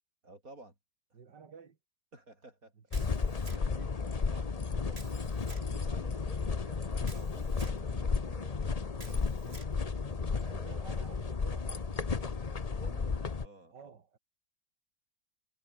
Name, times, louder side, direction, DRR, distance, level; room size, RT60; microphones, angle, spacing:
voice 1, 0.2-0.8 2.1-2.7 3.5-9.7 10.0-11.0 12.7-13.9, right 2 dB, 55° right, 7.4 m, -55 dB
voice 2, 1.1-1.8 2.9-4.1 10.3-12.0 13.7-14.2, right 6 dB, 90° right, 2.8 m, -53 dB
sound 1, 2.9-13.5, left 4 dB, 30° left, 0.8 m, -33 dB
Camera, 2.9-3.9 4.9-5.7 7.0-7.8 9.0-9.7, right 2 dB, 35° right, 4.4 m, -52 dB
omnidirectional pair, 1.8 m